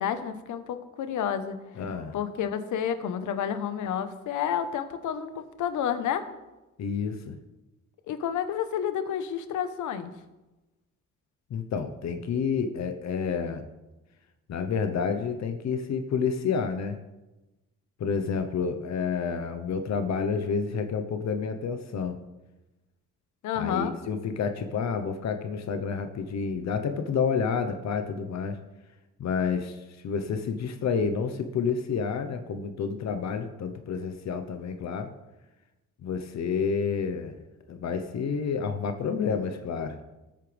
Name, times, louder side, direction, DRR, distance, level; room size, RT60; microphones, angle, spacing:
voice 1, 0.0-1.6 2.1-6.3 8.1-10.1 23.4-23.9, left 8 dB, 80° left, 10 dB, 1.1 m, -30 dB
voice 2, 1.8-2.2 6.8-7.4 11.5-13.6 14.5-17.0 18.0-22.2 23.5-28.6 29.2-35.1 36.0-37.3 37.7-40.0, left 6 dB, 65° left, 7 dB, 1.0 m, -29 dB
18.5 x 8.7 x 3.5 m, 1.1 s
cardioid pair, 90°, 30 cm